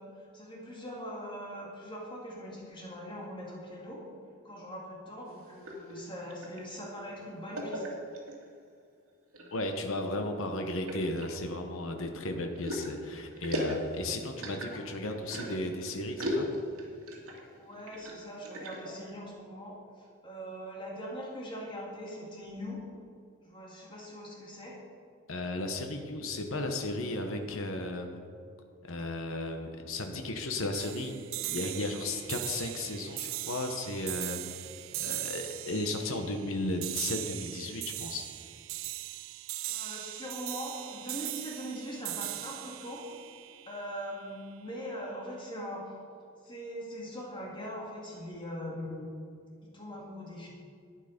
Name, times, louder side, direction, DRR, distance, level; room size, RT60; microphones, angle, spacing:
voice 1, 0.0-4.0 4.4-7.8 17.5-22.8 23.4-24.8 39.7-43.1 43.7-45.9 46.4-49.1 49.6-50.5, equal, 20° left, -3 dB, 2.1 m, -41 dB
sound 1, 5.3-6.7 7.5-8.5 9.1-9.6 10.1-10.2 10.9-11.9 12.5-15.7 16.2-17.4 17.7-19.0, left 1 dB, 80° right, 2.4 m, -37 dB
voice 2, 9.5-16.5 25.3-28.1 28.8-31.2 31.5-34.4 35.0-38.3, left 2 dB, 65° left, 4 dB, 1.0 m, -35 dB
sound 2, 30.7-44.2, right 17 dB, 65° right, 0.4 m, -39 dB
12.0 x 9.4 x 5.2 m, 2.2 s
head